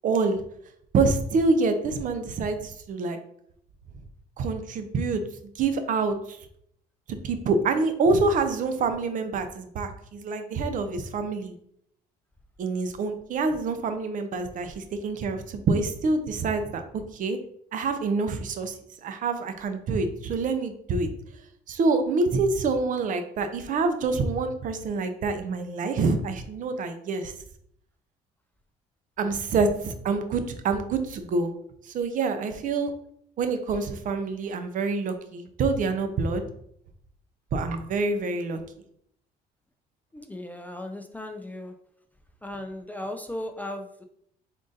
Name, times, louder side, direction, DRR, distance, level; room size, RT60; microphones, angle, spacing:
voice 1, 0.0-0.4 0.9-3.2 4.4-5.2 5.6-6.4 7.1-11.5 12.6-16.8 17.1-17.4 17.7-21.1 21.7-27.3 29.2-31.5 31.9-32.9 33.4-36.4 37.5-38.6, right 3 dB, 50° right, 8 dB, 0.6 m, -26 dB
voice 2, 40.1-41.7 42.4-44.0, left 1 dB, 10° left, 5 dB, 0.3 m, -36 dB
3.7 x 2.5 x 3.8 m, 0.69 s
cardioid pair, 110°, 17 cm